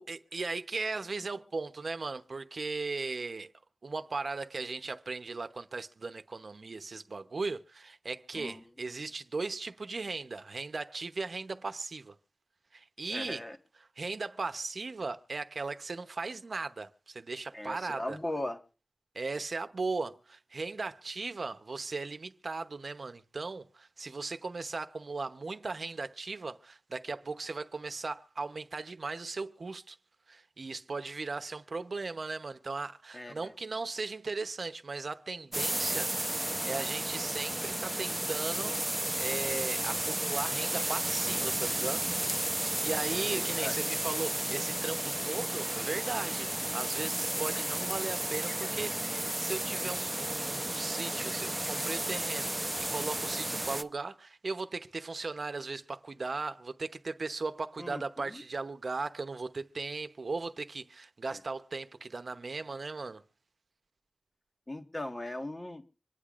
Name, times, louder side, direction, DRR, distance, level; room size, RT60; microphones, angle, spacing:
voice 1, 0.0-3.5 3.8-12.2 12.7-13.4 14.0-18.2 19.1-30.0 30.3-42.1 42.8-63.2, right 3 dB, 70° right, 0.8 m, -37 dB
voice 2, 13.1-13.6 17.5-18.6 33.1-33.5 42.8-43.8 57.8-58.4 61.3-61.4 64.7-65.8, left 1 dB, 30° left, 1.6 m, -39 dB
sound 1, 35.5-53.8, right 1 dB, 15° right, 0.8 m, -33 dB
25.5 x 10.0 x 2.5 m
wide cardioid pair, 80°, 0 cm